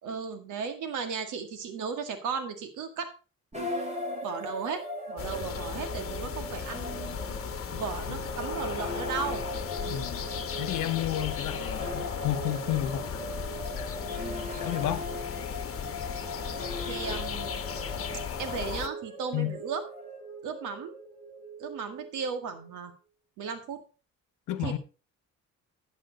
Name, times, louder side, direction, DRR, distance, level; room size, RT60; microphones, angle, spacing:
voice 1, 0.0-3.1 3.5-4.8 5.1-7.4 7.8-9.4 14.2-14.5 16.9-17.5 18.4-19.9 20.4-20.9 21.6-22.9 23.4-23.8 24.6-24.8, right 6 dB, 85° right, 1.9 m, -35 dB
sound 1, 3.5-22.6, equal, 20° right, 4.8 m, -39 dB
sound 2, 5.2-18.9, left 7 dB, 45° left, 1.2 m, -36 dB
voice 2, 9.9-10.2 10.6-13.2 13.8-13.9 14.2-14.3 14.6-15.1 19.3-19.6 24.5-24.8, left 13 dB, 85° left, 1.1 m, -31 dB
11.5 x 7.5 x 3.9 m
cardioid pair, 90°, 30 cm